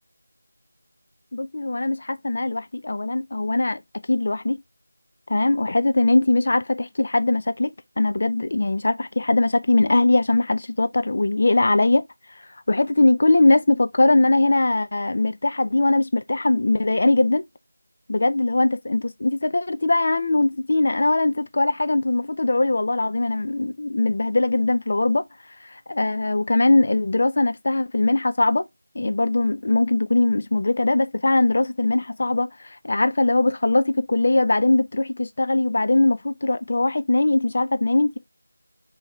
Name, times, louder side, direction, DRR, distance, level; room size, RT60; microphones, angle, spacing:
voice 1, 1.3-3.8 4.1-4.6 5.3-12.0 12.7-17.4 18.1-25.2 25.7-28.6 28.9-38.2, left 2 dB, 40° left, 0.4 m, -21 dB
4.6 x 2.7 x 3.0 m
figure-of-eight pair, 170°, 0 cm